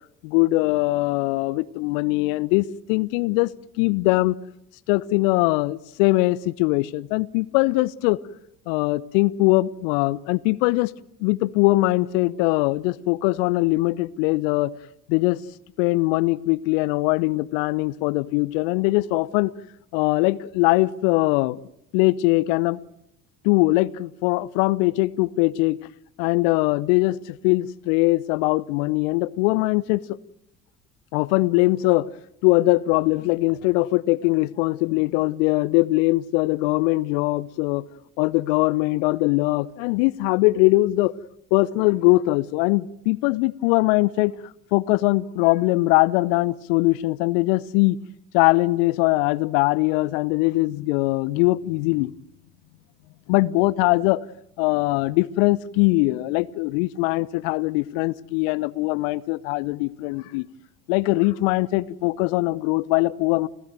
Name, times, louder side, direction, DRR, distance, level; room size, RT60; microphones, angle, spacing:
voice 1, 0.2-3.5 3.8-4.4 4.9-8.2 8.7-10.9 11.2-14.7 15.1-15.4 15.8-19.5 19.9-21.6 21.9-22.8 23.4-25.8 26.2-30.2 31.1-32.1 32.4-37.8 38.2-41.1 41.5-44.3 44.7-48.0 48.3-52.1 53.3-54.2 54.6-60.5 60.9-63.5, left 21 dB, 60° left, 1.0 m, -21 dB
29.5 x 16.0 x 9.2 m
figure-of-eight pair, 55°, 43 cm